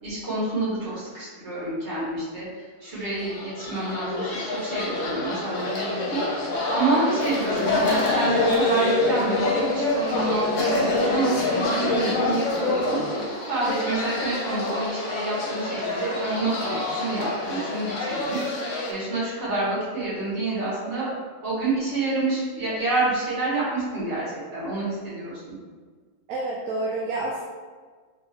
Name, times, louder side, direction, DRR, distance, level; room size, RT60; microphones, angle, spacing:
voice 1, 0.0-2.4 2.8-6.2 6.5-13.0 13.5-18.4 18.9-21.1 21.4-25.5, right 2 dB, 45° right, -9 dB, 1.8 m, -28 dB
sound 1, 3.1-18.9, left 2 dB, 60° left, 1.0 m, -26 dB
voice 2, 26.3-27.4, right 2 dB, 70° right, -2 dB, 1.0 m, -28 dB
3.8 x 2.9 x 3.0 m, 1.5 s
omnidirectional pair, 1.7 m